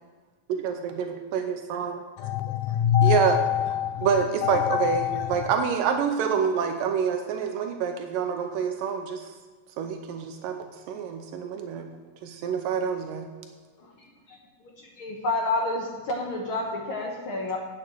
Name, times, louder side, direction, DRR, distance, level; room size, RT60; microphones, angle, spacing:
voice 1, 0.5-2.0 3.0-3.4 4.0-9.3 9.8-11.9 12.2-13.3, right 7 dB, 85° right, 5 dB, 2.4 m, -27 dB
voice 2, 2.2-4.1 4.4-5.3, left 10 dB, 80° left, 9 dB, 2.1 m, -24 dB
voice 3, 13.8-14.4 14.8-17.6, left 2 dB, 60° left, 0 dB, 1.4 m, -30 dB
9.2 x 7.3 x 7.6 m, 1.4 s
omnidirectional pair, 3.8 m